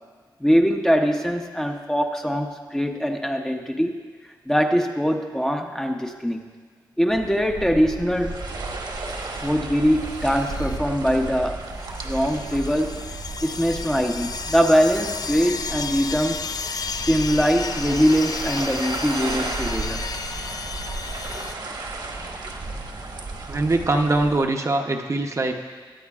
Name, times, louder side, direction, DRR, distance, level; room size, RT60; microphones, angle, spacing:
voice 1, 0.4-4.0 4.5-6.4 7.0-8.4 9.4-11.6 12.0-13.0 13.4-16.5 17.0-20.0, equal, 5° left, 3 dB, 0.7 m, -22 dB
sound 1, 7.1-24.5, right 3 dB, 65° right, 1.2 m, -34 dB
sound 2, 9.1-9.5 10.0-10.8 11.1-11.3 11.8-21.5, left 5 dB, 50° left, 0.4 m, -33 dB
voice 2, 23.5-25.5, right 2 dB, 40° right, 3 dB, 0.7 m, -22 dB
21.5 x 9.2 x 2.4 m, 1.5 s
wide cardioid pair, 150°, 8 cm